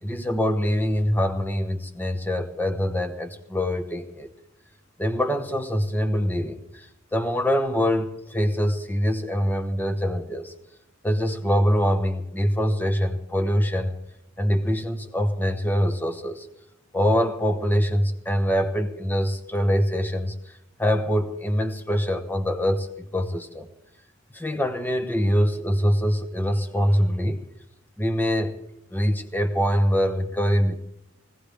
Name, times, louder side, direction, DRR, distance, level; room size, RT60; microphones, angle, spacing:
voice 1, 0.0-4.3 5.0-6.9 7.1-10.5 11.0-13.9 14.4-16.5 16.9-20.3 20.8-23.7 24.3-27.4 28.0-28.5 28.9-30.8, equal, 10° left, 6 dB, 1.0 m, -24 dB
20.5 x 16.5 x 3.4 m, 0.81 s
head